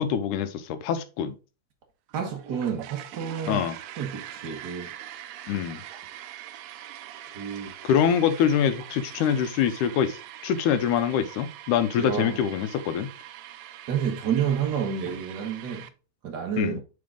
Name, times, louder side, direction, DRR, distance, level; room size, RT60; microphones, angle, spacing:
voice 1, 0.0-1.4 3.5-3.8 5.5-5.8 7.8-10.2 10.4-13.1 16.6-16.8, left 8 dB, 80° left, 2.1 m, -24 dB
voice 2, 2.1-3.6 4.0-4.9 7.3-7.7 12.0-12.4 13.9-15.9 16.2-16.8, right 8 dB, 55° right, 1.1 m, -29 dB
sound 1, 2.1-15.9, right 12 dB, 80° right, 1.5 m, -43 dB
8.6 x 3.8 x 3.7 m
omnidirectional pair, 3.7 m